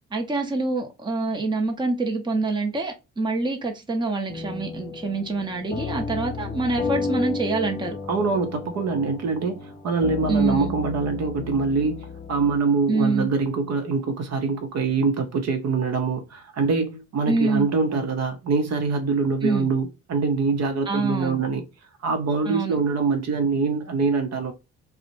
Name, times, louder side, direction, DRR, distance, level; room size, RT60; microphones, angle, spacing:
voice 1, 0.1-8.0 10.3-10.8 12.9-13.3 17.3-17.7 19.4-19.7 20.9-21.4 22.5-22.8, right 3 dB, 15° right, 0.6 m, -25 dB
sound 1, 4.3-12.6, left 4 dB, 25° left, 0.4 m, -32 dB
voice 2, 8.1-21.6 22.0-24.5, right 4 dB, 60° right, 0.7 m, -24 dB
2.5 x 2.1 x 2.9 m
cardioid pair, 90°, 30 cm